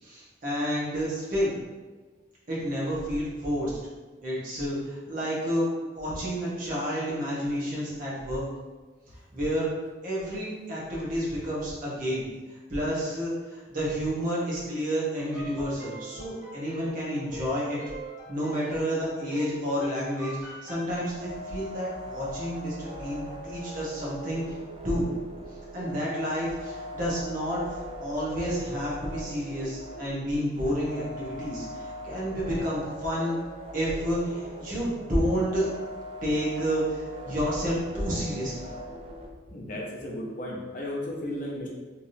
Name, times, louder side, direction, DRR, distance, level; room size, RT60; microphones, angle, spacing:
voice 1, 0.0-1.5 2.5-3.7 4.2-8.4 9.3-9.7 10.0-12.2 12.7-17.8 18.3-24.5 24.8-25.1 25.7-27.6 28.0-33.4 33.7-35.7 36.2-38.7, equal, 45° right, -7 dB, 1.1 m, -30 dB
sound 1, 15.2-21.0, left 2 dB, 10° right, 1.2 m, -41 dB
sound 2, 21.0-39.3, equal, 30° right, 0.3 m, -41 dB
voice 2, 39.5-41.7, left 1 dB, 45° left, -2 dB, 0.6 m, -34 dB
3.4 x 2.9 x 2.7 m, 1.3 s
head